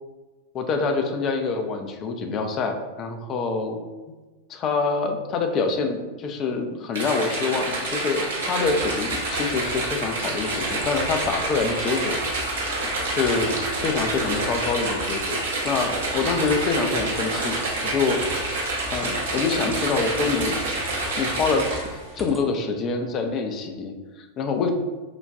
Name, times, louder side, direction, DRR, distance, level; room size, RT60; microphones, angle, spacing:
voice 1, 0.5-3.8 4.5-17.6 17.8-18.2 18.9-24.7, left 4 dB, 30° left, 5 dB, 0.4 m, -26 dB
sound 1, 6.9-22.1, right 2 dB, 65° right, 0.8 m, -28 dB
sound 2, 8.6-22.4, left 1 dB, ahead, 0.7 m, -40 dB
3.9 x 2.2 x 3.4 m, 1.3 s
figure-of-eight pair, 90°, 0 cm